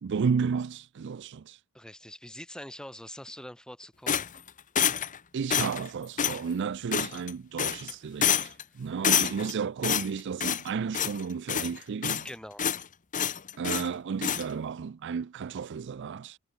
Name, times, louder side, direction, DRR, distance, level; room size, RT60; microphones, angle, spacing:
voice 1, 0.0-1.6 5.3-12.3 13.6-16.4, right 6 dB, 55° right, 0.4 m, -32 dB
voice 2, 1.7-4.3 12.2-12.7, left 1 dB, 5° left, 2.9 m, -44 dB
sound 1, 4.1-5.2 5.5-5.9 6.2-6.4 6.9-7.3 7.6-7.9 8.2-8.6 9.0-9.5 9.8-10.7 10.9-11.2 11.5-12.3 12.6-12.8 13.1-13.9 14.2-14.4, left 9 dB, 35° left, 0.9 m, -27 dB
head